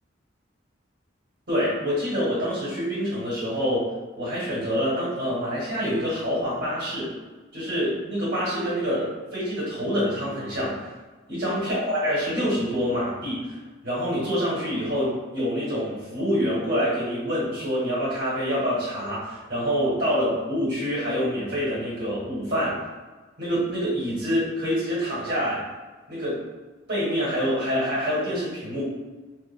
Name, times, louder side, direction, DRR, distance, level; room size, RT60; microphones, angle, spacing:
voice 1, 1.5-3.8 4.1-7.1 7.5-10.8 11.3-13.5 13.8-22.8 23.4-25.6 26.1-26.4 26.9-28.8, equal, 55° right, -9 dB, 1.5 m, -26 dB
3.3 x 2.1 x 3.6 m, 1.3 s
head